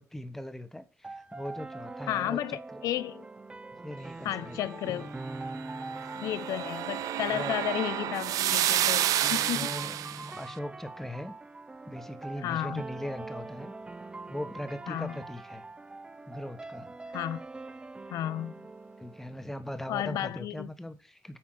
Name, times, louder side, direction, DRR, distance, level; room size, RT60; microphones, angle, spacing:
voice 1, 0.0-2.6 3.8-4.6 4.8-5.0 7.3-7.6 9.4-11.3 11.8-13.7 14.3-15.6 16.3-16.9 19.0-21.4, equal, 5° left, 1.1 m, -40 dB
sound 1, 1.0-20.0, right 3 dB, 15° right, 0.6 m, -43 dB
voice 2, 2.1-3.2 4.2-5.1 6.1-9.7 12.4-12.8 14.9-15.2 17.1-17.4 18.1-18.7 19.9-20.7, left 12 dB, 85° left, 0.5 m, -33 dB
sound 2, 5.7-10.3, right 12 dB, 80° right, 0.6 m, -29 dB
8.7 x 5.2 x 7.8 m
cardioid pair, 120°, 6 cm